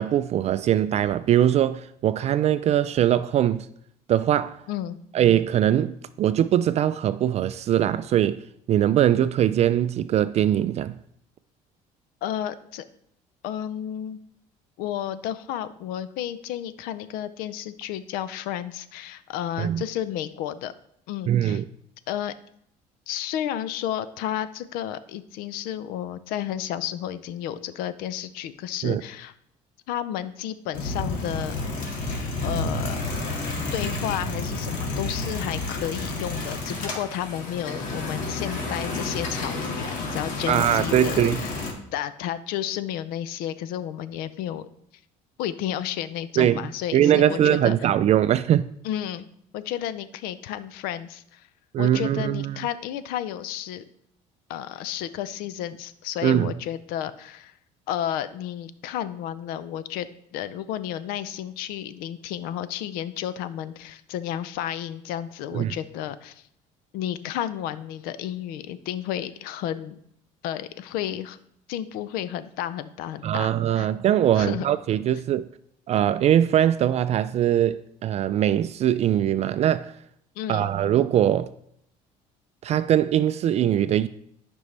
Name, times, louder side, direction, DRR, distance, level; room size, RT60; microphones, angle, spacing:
voice 1, 0.0-3.7 4.1-4.6 5.1-11.0 19.6-19.8 21.3-21.6 28.8-29.0 40.5-41.4 46.4-46.7 46.9-48.7 51.7-52.7 56.2-56.5 65.5-65.7 73.2-75.5 75.9-80.0 80.5-81.5 82.6-84.1, right 11 dB, 45° right, 0.3 m, -21 dB
voice 2, 12.2-12.8 13.4-14.2 14.8-20.7 21.1-21.6 22.1-22.3 23.1-29.3 29.9-31.6 32.4-33.0 33.7-41.6 41.9-44.7 45.4-47.9 48.8-49.3 49.5-51.5 51.8-53.8 54.5-57.6 57.9-66.5 66.9-70.0 70.4-71.4 71.7-73.9 74.3-74.7 80.4-80.7, left 11 dB, 80° left, 0.6 m, -32 dB
sound 1, 30.7-41.7, left 2 dB, 60° left, 2.1 m, -30 dB
12.0 x 5.4 x 3.3 m
supercardioid pair, 100°, 15 cm